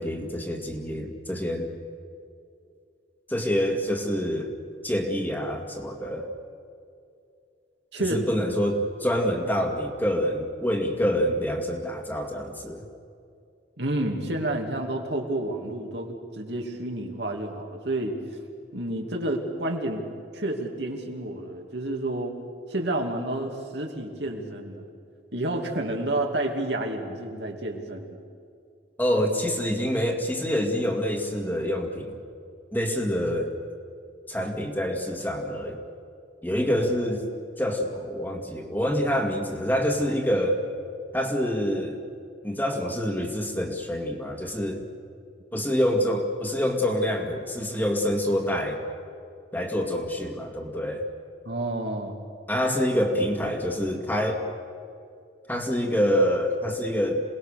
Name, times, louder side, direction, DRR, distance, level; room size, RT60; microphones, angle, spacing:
voice 1, 0.0-1.7 3.3-4.5 4.8-6.3 8.0-12.8 29.0-32.1 32.7-33.6 34.3-35.8 36.4-37.2 37.6-40.6 41.1-42.0 42.4-44.8 45.5-48.8 49.5-51.0 52.5-54.4 55.5-57.2, equal, 10° left, 2 dB, 2.2 m, -26 dB
voice 2, 13.8-18.1 18.7-20.0 20.3-22.3 22.7-24.8 25.3-28.2 36.8-36.9 51.4-52.1, right 1 dB, 70° right, 2 dB, 2.8 m, -30 dB
27.5 x 19.5 x 6.7 m, 2.5 s
head